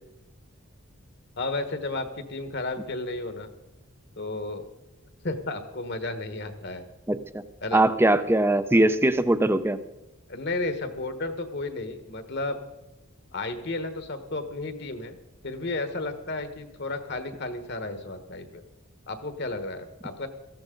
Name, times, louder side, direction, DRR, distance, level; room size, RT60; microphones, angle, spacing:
voice 1, 1.4-3.5 4.2-4.7 5.2-6.8 7.6-7.8 10.3-12.6 13.3-15.2 15.4-18.6 19.1-20.3, left 2 dB, 50° left, 9 dB, 1.3 m, -33 dB
voice 2, 7.1-7.4 7.7-9.8, right 1 dB, 10° right, 12 dB, 0.5 m, -21 dB
17.5 x 14.5 x 3.8 m, 1.0 s
head